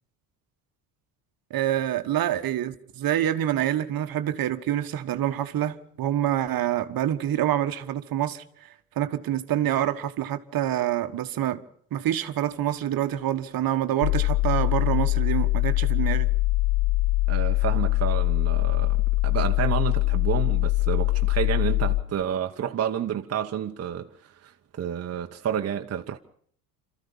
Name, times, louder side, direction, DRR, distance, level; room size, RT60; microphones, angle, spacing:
voice 1, 1.5-11.6 11.9-16.3, right 12 dB, 50° right, 1.4 m, -27 dB
sound 1, 14.0-22.0, left 19 dB, 70° left, 1.3 m, -23 dB
voice 2, 17.3-26.2, right 9 dB, 30° right, 1.2 m, -30 dB
27.0 x 14.0 x 7.2 m
hypercardioid pair, 65°, 46 cm